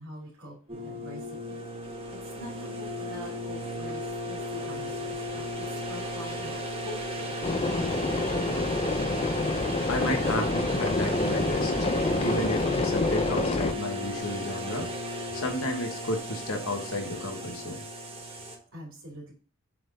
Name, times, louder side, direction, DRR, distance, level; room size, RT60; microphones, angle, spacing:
voice 1, 0.0-1.6 2.1-7.3 18.7-19.3, equal, 70° right, -4 dB, 2.5 m, -44 dB
sound 1, 0.7-18.6, equal, 25° right, 1.1 m, -35 dB
sound 2, 7.4-13.7, left 2 dB, 25° left, 0.5 m, -27 dB
voice 2, 9.9-11.7 12.2-14.9 15.3-17.8, left 1 dB, 70° left, 3 dB, 1.4 m, -32 dB
7.6 x 3.8 x 3.9 m, 0.38 s
head